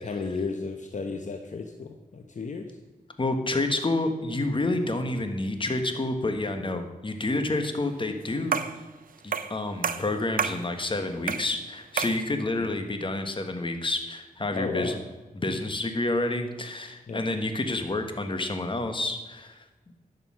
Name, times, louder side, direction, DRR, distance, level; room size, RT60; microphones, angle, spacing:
voice 1, 0.0-2.8 12.6-12.7 14.5-15.0 17.1-17.2, left 4 dB, 60° left, 5 dB, 1.0 m, -33 dB
voice 2, 3.2-8.6 9.2-15.0 15.3-19.6, left 2 dB, 35° left, 7 dB, 1.5 m, -29 dB
sound 1, 8.5-8.8 9.3-9.6 9.8-10.6 11.3-11.5 12.0-12.2, right 6 dB, 75° right, 0.6 m, -29 dB
11.0 x 6.6 x 6.3 m, 1.1 s
cardioid pair, 60°, 15 cm